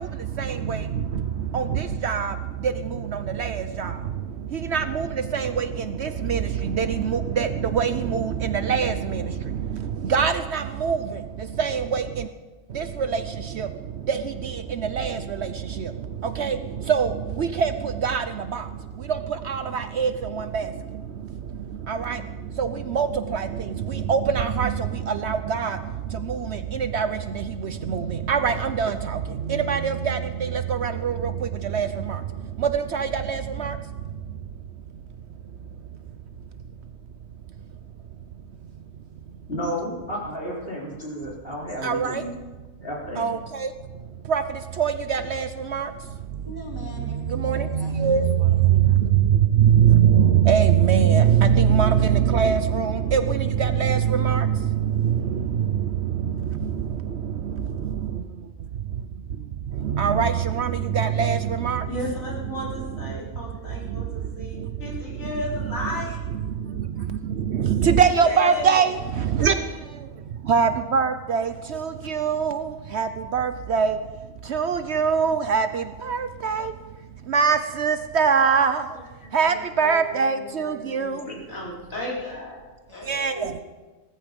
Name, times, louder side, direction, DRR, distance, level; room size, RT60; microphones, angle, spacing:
voice 1, 4.7-5.1 5.3-5.7 6.0-6.4 6.8-7.5 7.7-8.3 8.7-8.9 10.1-11.0 11.6-12.0 15.0-15.1 16.4-16.6 16.9-17.1 17.6-17.7 18.0-18.2 19.5-19.6 20.0-20.1 22.6-22.7 23.0-23.1 24.1-24.7 25.2-25.7 26.9-27.1 28.3-28.9 29.7-30.2 30.8-31.1 31.7-31.9 32.9-33.4 41.8-42.1 43.2-43.4 44.3-44.4 44.8-45.5 45.7-45.8 47.4-47.6 48.0-48.2 49.6-53.2 53.8-54.0 54.2-54.4 60.0-60.3 60.6-60.7 61.0-61.4 61.6-61.8 67.8-68.9 69.4-69.5 70.5-71.4 72.1-72.6 73.0-73.9 74.5-75.7 76.1-76.2 76.4-76.6 77.3-78.8 79.3-81.1 83.1-83.3, right 7 dB, 60° right, 10 dB, 0.9 m, -21 dB
voice 2, 39.5-42.3 42.8-43.3, equal, 45° left, -4 dB, 4.2 m, -32 dB
voice 3, 46.4-48.8 82.9-83.3, equal, 15° right, -1 dB, 2.4 m, -42 dB
voice 4, 61.9-66.2 67.0-67.1 68.1-68.9 78.9-79.6 79.8-80.0 80.3-82.6 82.9-83.6, left 2 dB, 80° left, -4 dB, 4.8 m, -34 dB
18.0 x 14.5 x 5.2 m, 1.2 s
omnidirectional pair, 1.4 m